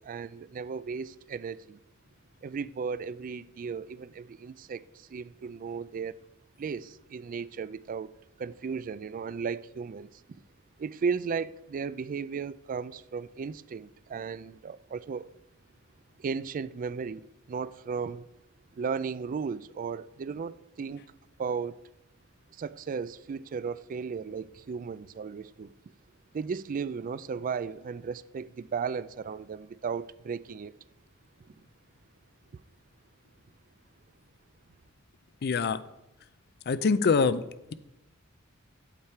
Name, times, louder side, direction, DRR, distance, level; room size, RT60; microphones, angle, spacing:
voice 1, 0.0-1.8 2.4-6.2 6.6-8.1 8.4-10.2 10.8-15.3 16.2-18.3 18.8-21.0 21.4-21.8 22.6-25.7 26.3-30.7 31.5-31.6, right 5 dB, 40° right, 0.3 m, -35 dB
voice 2, 35.4-35.8 36.7-37.4, left 5 dB, 50° left, 0.5 m, -24 dB
8.7 x 8.3 x 4.5 m
head